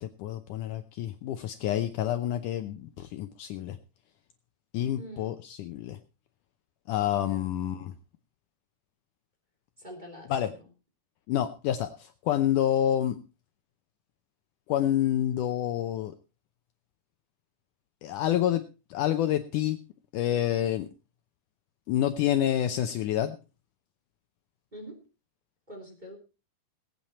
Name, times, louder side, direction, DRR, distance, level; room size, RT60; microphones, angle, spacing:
voice 1, 0.0-3.8 4.7-6.0 6.9-7.9 10.3-10.5 11.3-13.2 14.7-16.1 18.0-18.6 18.9-19.8 20.1-20.9 21.9-23.4, left 11 dB, 85° left, 8 dB, 1.8 m, -28 dB
voice 2, 5.0-5.3 7.1-7.6 9.8-10.7 24.7-25.0 25.7-26.2, equal, 10° right, 0 dB, 3.0 m, -45 dB
20.5 x 8.8 x 4.3 m, 0.32 s
omnidirectional pair, 4.7 m